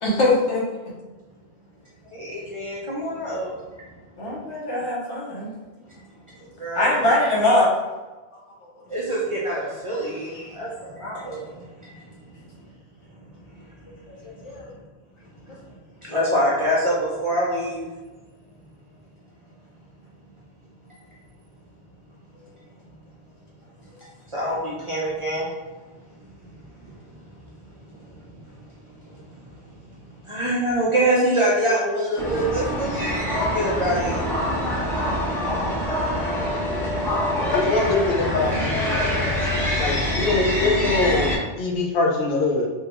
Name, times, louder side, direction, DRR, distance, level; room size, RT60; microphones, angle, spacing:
voice 1, 0.0-0.6 4.2-5.5 6.7-7.7 10.3-10.5 14.2-14.7, left 1 dB, 85° left, -4 dB, 1.2 m, -22 dB
voice 2, 2.1-3.5 6.6-7.1 8.9-11.5 16.0-17.9 24.3-25.5 30.3-33.2 33.5-34.2 35.0-35.4, right 1 dB, 40° right, -7 dB, 0.5 m, -25 dB
sound 1, 32.2-41.4, left 1 dB, ahead, 0.7 m, -25 dB
voice 3, 37.4-39.4 39.8-42.7, left 3 dB, 65° left, 0 dB, 0.7 m, -23 dB
3.5 x 2.2 x 2.9 m, 1.2 s
omnidirectional pair, 1.2 m